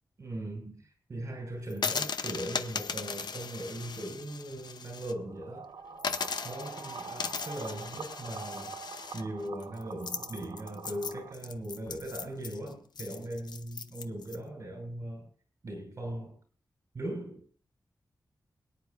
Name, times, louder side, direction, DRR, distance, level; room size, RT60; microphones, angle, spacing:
voice 1, 0.2-5.7 6.4-15.3 15.6-16.4 16.9-17.6, right 1 dB, 45° right, 3 dB, 5.6 m, -39 dB
sound 1, 1.7-5.1 5.5-5.6 6.0-14.4, left 5 dB, 65° left, 0.8 m, -38 dB
sound 2, 5.3-11.3, right 5 dB, 80° right, 1.4 m, -45 dB
23.0 x 9.8 x 2.6 m, 0.41 s
wide cardioid pair, 180°, 8 cm